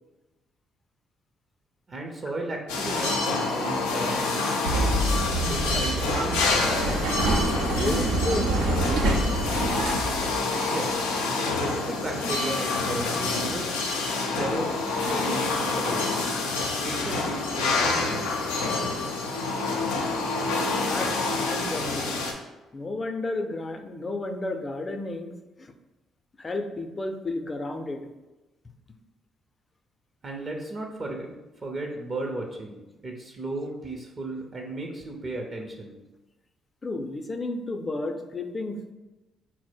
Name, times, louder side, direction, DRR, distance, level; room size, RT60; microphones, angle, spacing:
voice 1, 1.9-5.0 5.5-6.9 10.6-11.1 11.4-13.8 14.2-14.7 15.1-16.2 16.8-18.5 30.2-31.3 31.6-36.0, right 2 dB, 40° right, 1 dB, 0.7 m, -35 dB
sound 1, 2.7-22.3, left 3 dB, 85° left, 0.5 m, -27 dB
sound 2, 4.6-10.3, right 1 dB, 85° right, 0.6 m, -26 dB
voice 2, 7.7-8.6 20.8-22.3 22.7-25.3 25.6-25.7 26.4-28.1 28.6-28.7 36.8-38.9, left 2 dB, 35° left, 6 dB, 0.5 m, -32 dB
4.3 x 2.0 x 4.3 m, 1.1 s
hypercardioid pair, 50°, 0 cm